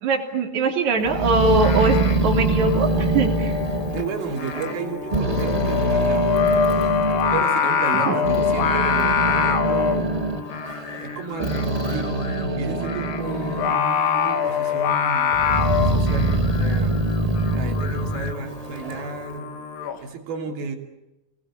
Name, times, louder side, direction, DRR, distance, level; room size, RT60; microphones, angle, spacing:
voice 1, 0.0-2.0 2.2-3.6 7.9-8.2, right 3 dB, 55° right, 2 dB, 4.5 m, -22 dB
Growling, 1.0-4.8 5.1-7.4 8.0-13.8 14.2-14.9 15.3-19.1, right 2 dB, 20° right, 0.9 m, -24 dB
Singing, 1.5-20.0, left 7 dB, 75° left, 3.7 m, -25 dB
voice 2, 3.9-10.2 10.7-16.9 17.5-19.6 20.0-20.8, right 4 dB, 85° right, 4 dB, 4.9 m, -33 dB
30.0 x 21.0 x 8.7 m, 0.99 s
omnidirectional pair, 4.2 m